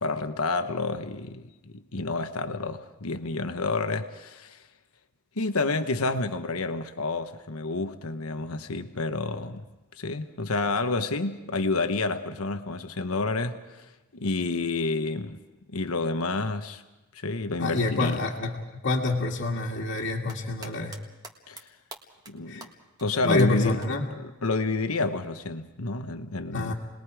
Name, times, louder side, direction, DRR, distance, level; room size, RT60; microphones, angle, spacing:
voice 1, 0.0-4.6 5.4-9.6 10.0-15.4 15.7-16.8 17.1-18.2 21.5-21.6 22.3-22.7 23.0-26.7, left 3 dB, 85° left, 1.2 m, -29 dB
voice 2, 17.6-21.0 22.5-22.7 23.2-24.0 26.5-26.7, left 2 dB, 60° left, 1.9 m, -27 dB
sound 1, 20.0-21.0 21.2-21.6 21.9-22.3 22.6-22.7 23.0-23.1 23.4-23.5 23.8-23.9 25.4-25.5, right 3 dB, 20° right, 1.7 m, -43 dB
29.5 x 20.5 x 4.9 m
head